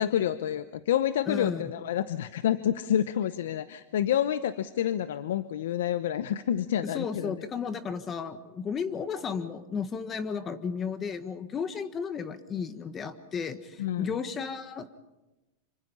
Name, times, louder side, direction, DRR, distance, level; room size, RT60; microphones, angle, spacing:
voice 1, 0.0-7.4 13.8-14.1, left 10 dB, 80° left, 13 dB, 0.8 m, -28 dB
voice 2, 1.3-1.6 6.8-15.0, left 6 dB, 20° left, 11 dB, 1.4 m, -34 dB
26.5 x 25.5 x 5.6 m, 1.0 s
supercardioid pair, 145°, 0 cm